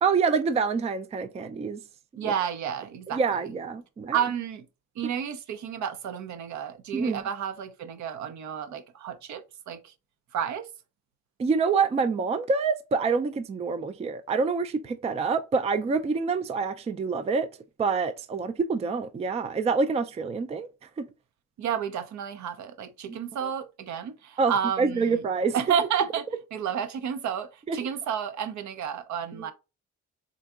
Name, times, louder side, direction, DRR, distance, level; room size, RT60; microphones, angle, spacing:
voice 1, 0.0-1.8 2.2-2.3 3.1-4.2 6.9-7.2 11.4-17.5 17.8-20.7 21.0-21.1 23.4-23.5 24.4-25.5 27.7-27.9 29.5-29.6, right 4 dB, 20° right, 0.4 m, -26 dB
voice 2, 2.2-3.2 4.1-4.6 5.0-9.9 10.3-10.7 21.6-25.2 25.5-26.3 26.5-29.5, right 8 dB, 70° right, 0.6 m, -31 dB
3.8 x 3.5 x 2.3 m
cardioid pair, 90°, 30 cm